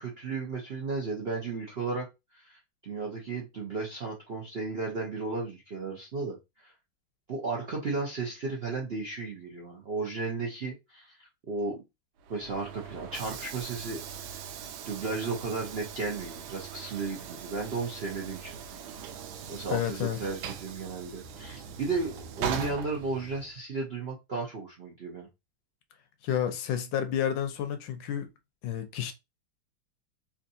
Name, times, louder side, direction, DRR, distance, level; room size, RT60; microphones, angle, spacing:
voice 1, 0.0-2.1 2.3-6.4 6.6-6.7 7.3-11.8 12.3-14.4 14.8-18.6 19.5-25.3, right 3 dB, 60° right, 0.6 m, -34 dB
Train / Sliding door, 12.2-23.6, right 7 dB, 85° right, 1.3 m, -41 dB
voice 2, 19.7-20.2 26.2-28.3 28.6-29.1, left 9 dB, 80° left, 1.2 m, -30 dB
3.4 x 2.8 x 2.7 m
omnidirectional pair, 2.1 m